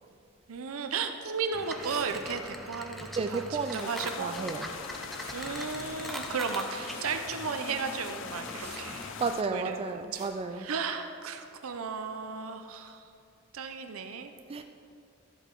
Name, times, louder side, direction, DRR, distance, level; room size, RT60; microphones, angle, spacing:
voice 1, 0.5-3.4 3.7-4.3 5.3-9.1 9.5-9.8 10.1-10.2 10.6-13.0 13.5-14.3, right 5 dB, 90° right, 7 dB, 0.6 m, -34 dB
sound 1, 1.5-9.3, equal, ahead, 0.7 m, -42 dB
sound 2, 1.7-2.1 3.5-3.8 5.1-5.4 6.8-7.1 8.6-8.8 10.1-10.3, right 5 dB, 50° right, 1.3 m, -47 dB
voice 2, 3.2-3.9 4.2-4.7 9.2-10.7 14.5-14.6, right 4 dB, 25° right, 7 dB, 0.3 m, -32 dB
sound 3, 3.8-9.4, left 9 dB, 60° left, 0.3 m, -42 dB
13.0 x 7.9 x 4.5 m, 2.6 s
head